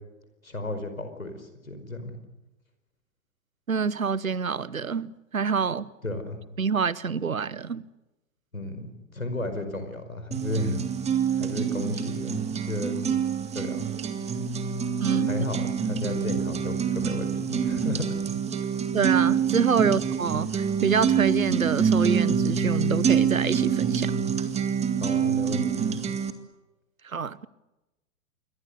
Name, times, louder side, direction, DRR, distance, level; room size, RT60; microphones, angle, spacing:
voice 1, 0.4-2.2 6.0-6.4 8.5-10.9 11.3-13.0 13.5-13.9 15.2-18.2 25.0-26.1, left 1 dB, 85° left, 5.0 m, -33 dB
voice 2, 3.7-5.9 6.6-7.8 15.0-15.3 18.9-24.1 27.0-27.5, right 5 dB, 85° right, 1.0 m, -27 dB
sound 1, 10.3-26.3, right 7 dB, 15° right, 2.0 m, -26 dB
28.0 x 22.5 x 6.8 m
figure-of-eight pair, 100°, 40 cm